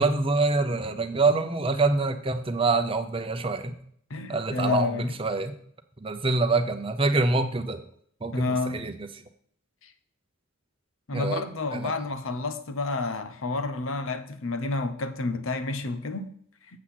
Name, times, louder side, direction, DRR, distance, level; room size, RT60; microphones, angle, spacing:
voice 1, 0.0-3.7 4.3-5.5 6.0-7.8 8.2-9.1 11.1-11.5 11.7-11.9, right 3 dB, 25° right, 0.7 m, -25 dB
voice 2, 4.1-5.1 8.3-8.9 11.1-16.3, left 3 dB, 70° left, 0.8 m, -29 dB
8.0 x 7.4 x 4.2 m
head